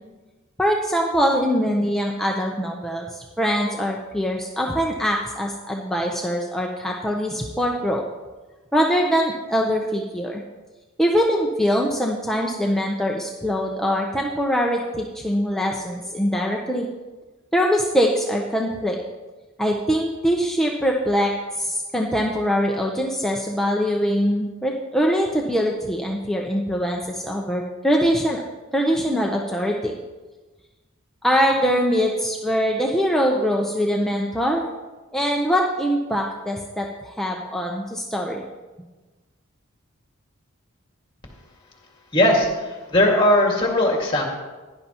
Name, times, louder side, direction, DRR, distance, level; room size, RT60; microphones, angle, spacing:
voice 1, 0.6-8.0 8.7-10.4 11.0-16.9 17.5-19.0 19.6-28.4 28.7-29.9 31.2-34.7 35.1-38.4, equal, ahead, -1 dB, 0.7 m, -23 dB
voice 2, 42.1-44.3, left 1 dB, 20° left, 0 dB, 1.9 m, -19 dB
16.0 x 11.0 x 2.9 m, 1.2 s
head